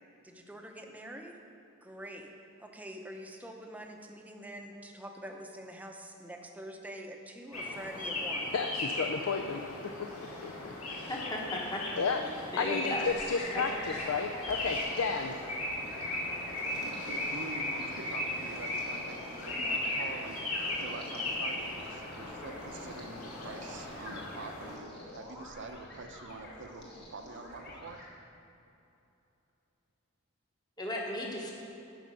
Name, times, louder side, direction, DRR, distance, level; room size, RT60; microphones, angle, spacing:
voice 1, 0.2-1.4 1.8-2.3 2.6-8.5, right 1 dB, 5° right, 2 dB, 0.7 m, -45 dB
sound 1, 7.5-24.8, left 1 dB, 85° left, 1.9 m, -37 dB
voice 2, 8.5-9.6 10.4-11.2 12.0-15.3, left 5 dB, 70° left, 5 dB, 0.5 m, -32 dB
voice 3, 11.1-11.8 12.1-13.1 13.5-13.6 30.8-31.5, left 1 dB, 20° left, -2 dB, 1.1 m, -36 dB
sound 2, 13.0-28.1, left 1 dB, 50° left, 1.7 m, -49 dB
voice 4, 16.9-26.8 27.1-28.0, right 3 dB, 60° right, 6 dB, 0.7 m, -46 dB
9.1 x 5.7 x 6.5 m, 2.8 s
head